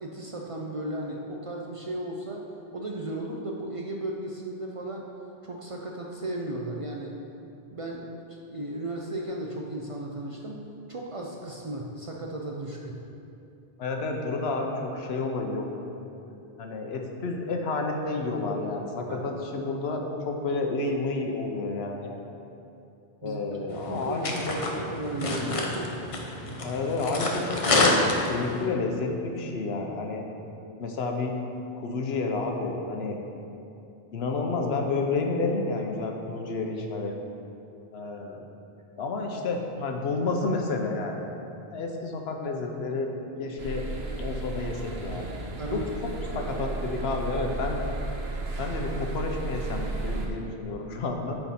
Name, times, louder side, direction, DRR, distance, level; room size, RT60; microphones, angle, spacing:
voice 1, 0.0-2.5 2.7-5.1 5.4-7.2 7.7-8.2 8.5-13.0 19.1-19.3 23.2-24.3 24.7-25.9 45.6-45.9, right 1 dB, 45° right, -1 dB, 0.5 m, -35 dB
voice 2, 13.8-15.7 16.3-22.2 23.2-24.6 26.6-30.2 30.8-31.4 31.7-33.2 34.1-37.1 37.9-38.4 39.0-41.3 41.7-43.1 43.4-43.8 44.2-45.3 45.7-47.8 48.6-51.3, left 3 dB, 80° left, 2 dB, 1.0 m, -30 dB
sound 1, 23.7-28.7, left 2 dB, 35° left, 0.7 m, -28 dB
sound 2, 43.6-50.3, right 3 dB, 75° right, 1.1 m, -34 dB
9.1 x 4.5 x 4.2 m, 2.7 s
omnidirectional pair, 1.0 m